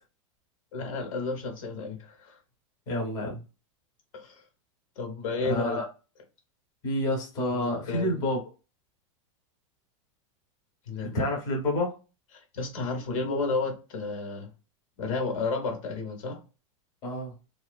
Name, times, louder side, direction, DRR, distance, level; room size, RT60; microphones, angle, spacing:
voice 1, 0.7-2.4 4.1-4.4 5.0-5.8 7.5-8.2 10.9-11.3 12.5-14.5 15.0-16.4, left 3 dB, 75° left, 1.0 m, -32 dB
voice 2, 2.9-3.4 5.4-5.8 6.8-8.4 11.0-12.0 17.0-17.3, left 1 dB, 20° left, 0.8 m, -28 dB
2.7 x 2.4 x 2.2 m
supercardioid pair, 175°, 17 cm